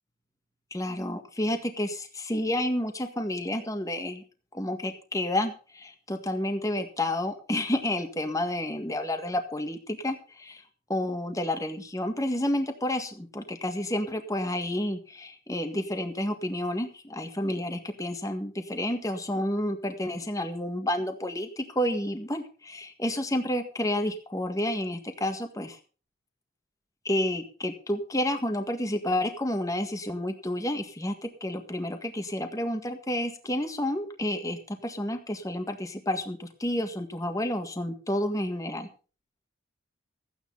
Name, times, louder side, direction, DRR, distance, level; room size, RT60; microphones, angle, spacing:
voice 1, 0.7-4.2 4.5-10.6 10.9-25.8 27.1-38.9, left 1 dB, 15° left, 6 dB, 1.7 m, -30 dB
14.5 x 9.3 x 5.5 m, 0.37 s
head